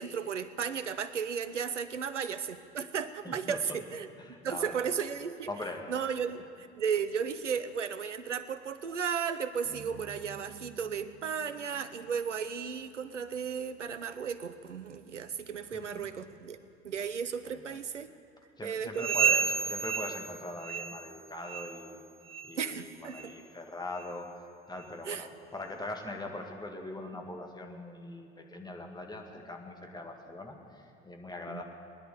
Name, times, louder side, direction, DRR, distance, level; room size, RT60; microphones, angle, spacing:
voice 1, 0.0-4.1 4.4-5.5 5.9-16.6 16.8-18.1 18.6-19.2 22.6-23.3 25.1-25.3 31.5-31.6, right 7 dB, 85° right, 13 dB, 0.7 m, -34 dB
voice 2, 3.2-3.8 4.2-4.9 5.5-5.8 15.7-16.1 17.5-17.8 18.6-22.0 22.4-24.3 24.7-31.6, left 2 dB, 10° left, 2 dB, 2.1 m, -41 dB
sound 1, 9.6-14.0, right 8 dB, 40° right, 1.4 m, -53 dB
sound 2, 18.9-21.2 21.4-21.8 22.3-22.5 23.1-23.3 24.0-24.1 24.8-24.9, right 6 dB, 15° right, 0.3 m, -31 dB
20.5 x 10.5 x 6.8 m, 2.4 s
figure-of-eight pair, 60°, 35 cm